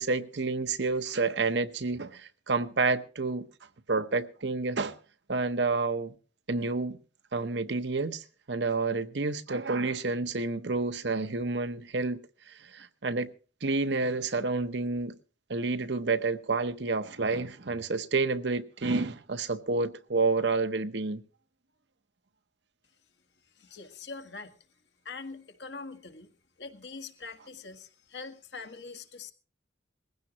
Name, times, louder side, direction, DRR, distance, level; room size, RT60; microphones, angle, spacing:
voice 1, 0.0-3.5 3.9-5.0 5.3-6.1 6.5-7.0 7.3-12.2 12.5-13.3 13.6-15.2 15.5-21.2, right 3 dB, 65° right, 0.9 m, -29 dB
voice 2, 23.5-24.5 25.0-26.3 26.6-29.3, left 4 dB, 65° left, 1.5 m, -43 dB
20.0 x 16.0 x 2.9 m
head